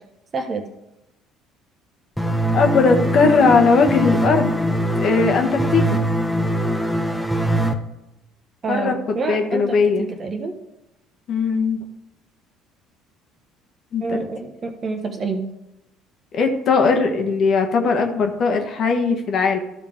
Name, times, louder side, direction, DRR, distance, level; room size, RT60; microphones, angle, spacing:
voice 1, 0.3-0.6 8.6-10.5 14.0-15.4, right 3 dB, 35° right, 5 dB, 1.2 m, -27 dB
sound 1, 2.2-7.7, right 1 dB, 5° left, 0.9 m, -22 dB
voice 2, 2.5-4.5 5.0-6.0 8.7-8.9 9.3-10.1 11.3-11.8 13.9-14.2 16.3-19.6, left 4 dB, 45° left, 4 dB, 1.3 m, -18 dB
13.5 x 4.9 x 3.6 m, 0.92 s
figure-of-eight pair, 55°, 0 cm